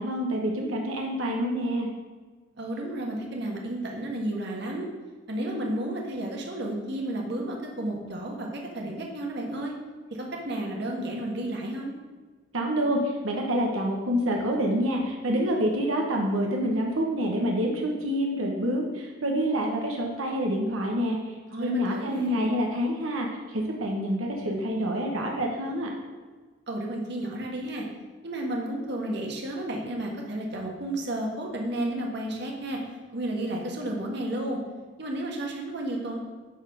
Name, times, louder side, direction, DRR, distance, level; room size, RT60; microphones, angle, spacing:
voice 1, 0.0-1.9 12.5-25.9, equal, 90° right, 0 dB, 1.2 m, -27 dB
voice 2, 2.6-4.9 5.3-9.7 10.1-11.9 21.5-22.5 26.7-27.9 28.2-32.8 33.1-34.6 35.0-36.2, right 1 dB, 55° right, 0 dB, 1.6 m, -32 dB
9.7 x 4.2 x 6.6 m, 1.4 s
head